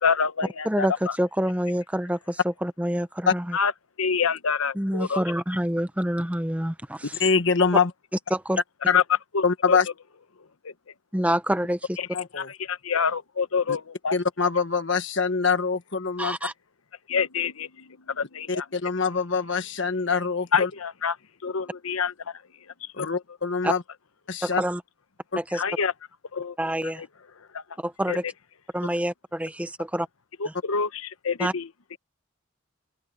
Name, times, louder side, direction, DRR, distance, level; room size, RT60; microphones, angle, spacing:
voice 1, 0.0-1.2 3.5-3.7 4.0-5.2 8.9-9.0 9.3-9.8 10.6-10.7 12.4-14.2 17.1-18.7 20.5-21.2 21.4-22.4 22.8-23.1 25.5-25.9 26.3-26.6 26.8-27.1 27.5-27.6 28.1-28.2 30.4-31.7, left 6 dB, 90° left, 0.9 m, -27 dB
voice 2, 1.2-3.6 4.7-7.1 8.3-8.6 11.1-11.8 16.2-16.5 23.6-23.7 24.4-24.8 25.4-25.6 26.6-27.0 27.8-28.2 28.7-30.1 31.4-31.5, equal, 5° right, 0.8 m, -27 dB
voice 3, 7.2-7.9 8.9-9.0 9.4-9.9 12.1-12.5 13.7-13.8 14.1-16.4 18.5-20.7 22.9-23.8 24.3-24.6, left 5 dB, 60° left, 1.5 m, -24 dB
open air
head